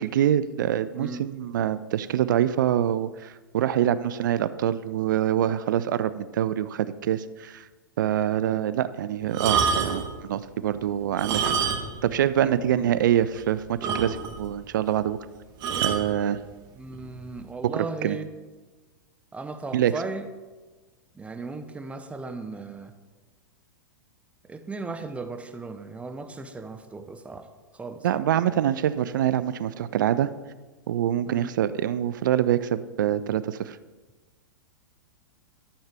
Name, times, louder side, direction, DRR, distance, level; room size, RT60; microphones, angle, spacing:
voice 1, 0.0-7.7 8.0-11.5 12.0-15.2 15.8-16.4 17.6-18.2 19.7-19.9 28.0-30.3 30.9-33.8, right 10 dB, 65° right, 16 dB, 0.4 m, -25 dB
sound 1, 9.3-10.1 11.1-12.1 12.3-12.5 13.0-13.1 13.3-13.4 13.8-14.5 15.6-16.1 16.9-17.2, right 6 dB, 40° right, 1.3 m, -26 dB
voice 2, 12.4-12.9 16.8-18.3 19.3-20.2 21.2-22.9 24.5-27.5 27.7-28.1 31.3-31.5, right 3 dB, 10° right, 8 dB, 0.7 m, -36 dB
12.5 x 7.2 x 3.5 m, 1.3 s
hypercardioid pair, 105°, 11 cm